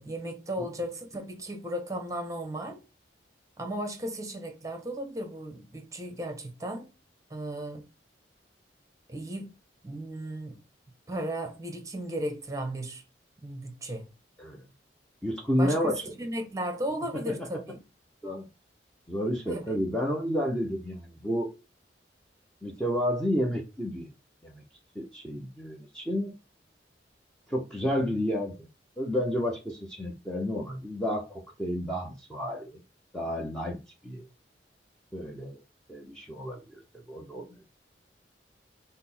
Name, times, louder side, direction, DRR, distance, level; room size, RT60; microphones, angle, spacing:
voice 1, 0.0-2.8 3.6-6.9 7.3-7.8 9.1-9.5 9.8-10.6 11.1-13.0 13.4-14.0 15.6-17.8 19.5-19.8, right 1 dB, 20° right, 0.9 m, -35 dB
voice 2, 15.2-16.1 17.3-17.4 18.2-18.5 19.1-21.5 22.6-24.1 24.4-24.6 24.9-26.3 27.5-28.7 29.0-32.8 33.1-34.3 35.1-35.6 35.9-36.8 37.1-37.7, equal, 5° left, 0.6 m, -31 dB
5.8 x 2.1 x 4.2 m
head